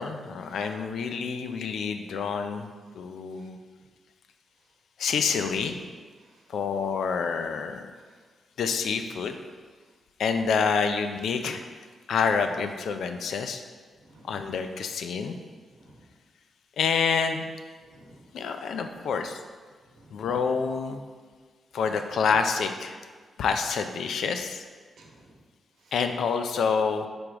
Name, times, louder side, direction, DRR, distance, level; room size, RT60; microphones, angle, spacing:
voice 1, 0.0-2.7 2.9-3.6 5.0-5.8 6.5-7.9 8.6-9.4 10.2-11.6 12.1-13.6 14.3-15.4 16.8-17.4 18.3-19.4 20.1-21.0 21.7-23.0 23.4-24.6 25.9-27.1, left 5 dB, 75° left, 7 dB, 0.5 m, -27 dB
voice 2, 14.0-14.3 15.7-16.0 17.8-18.3 19.9-20.2 25.0-25.4 25.8-25.9, right 1 dB, 70° right, 1 dB, 1.0 m, -54 dB
6.1 x 4.9 x 3.6 m, 1.5 s
supercardioid pair, 45°, 0 cm